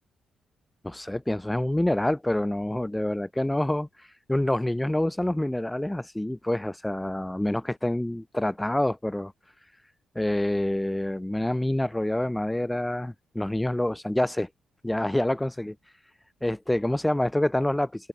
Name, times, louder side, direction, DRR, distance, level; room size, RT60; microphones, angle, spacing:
voice 1, 0.8-3.9 4.3-9.3 10.2-14.5 14.8-15.7 16.4-18.1, left 1 dB, 10° left, 0.3 m, -27 dB
hypercardioid pair, 45°, 0 cm